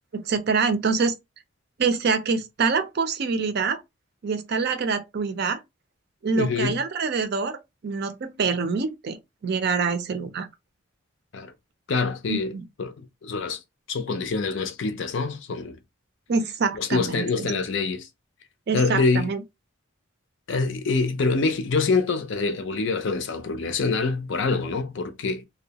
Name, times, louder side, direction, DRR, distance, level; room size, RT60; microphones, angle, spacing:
voice 1, 0.1-1.1 1.8-3.8 4.2-5.6 6.2-10.5 12.3-12.6 16.3-17.5 18.7-19.4, right 4 dB, 50° right, 0.4 m, -25 dB
voice 2, 6.3-6.8 11.3-11.5 11.9-12.9 13.2-13.6 13.9-15.8 16.7-18.1 18.7-19.3 20.5-25.5, left 4 dB, 60° left, 0.5 m, -25 dB
2.6 x 2.1 x 2.8 m
head